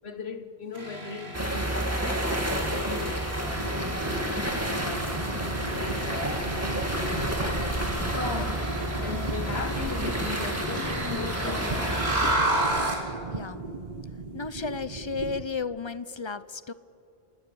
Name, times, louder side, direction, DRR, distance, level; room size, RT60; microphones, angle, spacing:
voice 1, 0.0-4.3 4.7-12.4, left 4 dB, 80° left, 1.7 m, -38 dB
sound 1, 0.7-13.1, right 1 dB, 85° right, 4.5 m, -34 dB
sound 2, 1.3-12.4, right 1 dB, 15° right, 2.3 m, -30 dB
sound 3, 3.6-15.4, right 3 dB, 40° right, 1.3 m, -37 dB
voice 2, 13.3-13.6 14.3-16.7, left 4 dB, 35° left, 0.6 m, -33 dB
28.0 x 24.0 x 7.0 m
omnidirectional pair, 1.0 m